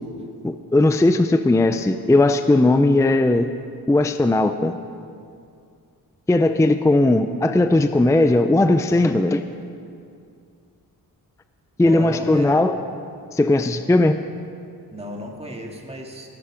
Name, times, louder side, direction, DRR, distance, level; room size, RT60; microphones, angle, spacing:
voice 1, 0.4-3.5 3.9-4.7 6.3-9.4 11.8-12.8 13.3-14.2, left 2 dB, 10° left, 9 dB, 0.5 m, -17 dB
voice 2, 11.8-12.5 14.9-16.3, right 1 dB, 15° right, 0 dB, 2.2 m, -35 dB
18.5 x 10.5 x 5.0 m, 2.4 s
cardioid pair, 90°, 38 cm